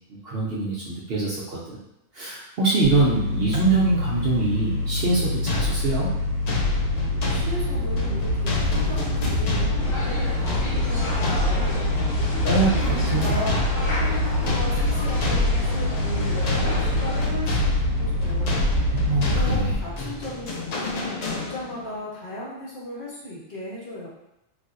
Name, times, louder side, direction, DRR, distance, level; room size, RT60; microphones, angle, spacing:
voice 1, 0.2-1.8 2.1-6.1 12.4-13.4 19.1-19.7, right 3 dB, 60° right, -6 dB, 0.7 m, -24 dB
sound 1, 2.8-19.7, left 1 dB, 85° right, 1.1 m, -26 dB
sound 2, 5.5-21.9, left 2 dB, 90° left, 0.3 m, -29 dB
voice 2, 6.9-12.0 12.6-13.6 14.0-18.9 19.2-24.1, equal, 45° left, -7 dB, 0.9 m, -36 dB
sound 3, 9.8-17.3, left 1 dB, 75° left, 1.1 m, -33 dB
3.3 x 2.6 x 2.5 m, 0.86 s
omnidirectional pair, 1.4 m